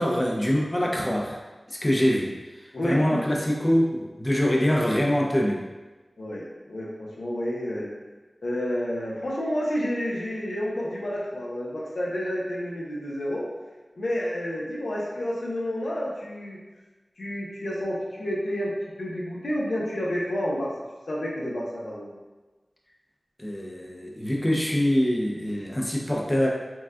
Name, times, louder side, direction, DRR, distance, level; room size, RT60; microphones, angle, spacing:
voice 1, 0.0-1.4 1.7-5.6 23.4-26.5, equal, 25° left, -2 dB, 0.6 m, -24 dB
voice 2, 2.7-3.4 6.2-7.9 8.4-13.5 14.0-16.6 17.2-20.7 21.1-22.2, equal, 90° left, -5 dB, 0.8 m, -30 dB
5.8 x 2.3 x 2.4 m, 1.2 s
wide cardioid pair, 50°, 0 cm